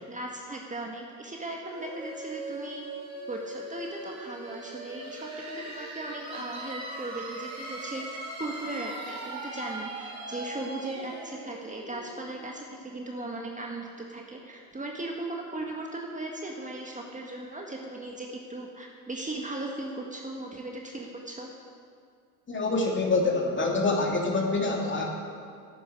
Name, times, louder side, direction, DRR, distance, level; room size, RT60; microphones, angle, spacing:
voice 1, 0.0-2.9 3.3-21.5, right 2 dB, 15° right, 0 dB, 1.7 m, -37 dB
sound 1, 1.7-13.2, right 1 dB, 35° right, 4.2 m, -40 dB
voice 2, 22.5-25.0, left 3 dB, 25° left, 0 dB, 2.9 m, -26 dB
12.0 x 9.1 x 8.9 m, 2.3 s
hypercardioid pair, 70°, 46 cm